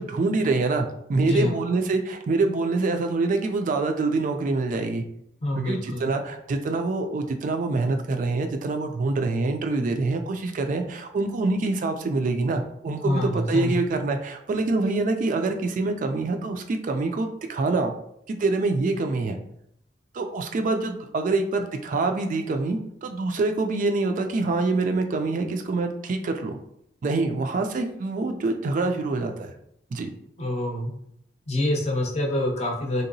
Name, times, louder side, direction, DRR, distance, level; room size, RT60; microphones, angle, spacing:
voice 1, 0.0-5.0 5.6-17.9 18.3-19.4 20.1-26.6 27.0-29.6 29.9-30.1, right 3 dB, 45° right, 5 dB, 0.3 m, -25 dB
voice 2, 1.2-1.5 5.4-6.1 13.0-13.8 30.4-30.9 31.5-33.0, left 1 dB, 35° left, 0 dB, 0.6 m, -26 dB
3.6 x 2.8 x 2.6 m, 0.73 s
head